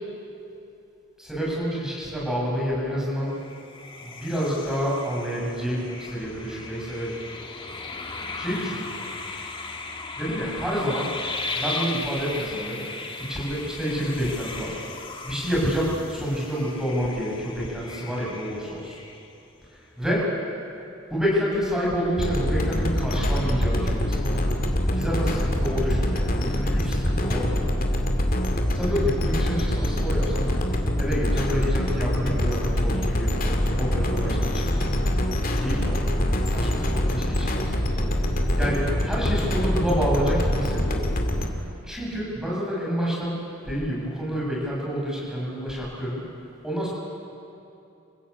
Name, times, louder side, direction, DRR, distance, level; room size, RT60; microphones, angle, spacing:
voice 1, 1.2-3.4 4.0-7.2 8.3-9.2 10.2-11.1 11.5-12.8 13.3-14.8 15.2-19.0 19.7-20.3 20.7-20.8 21.1-24.4 24.9-27.6 28.7-30.5 31.0-34.9 35.6-38.0 38.3-41.1 41.8-43.4 43.6-46.2 46.6-46.9, equal, 5° right, -5 dB, 7.0 m, -28 dB
sound 1, 3.3-19.6, left 3 dB, 25° left, 1.6 m, -37 dB
sound 2, 22.2-41.5, equal, 45° left, 2.2 m, -24 dB
28.0 x 15.5 x 8.6 m, 2.8 s
head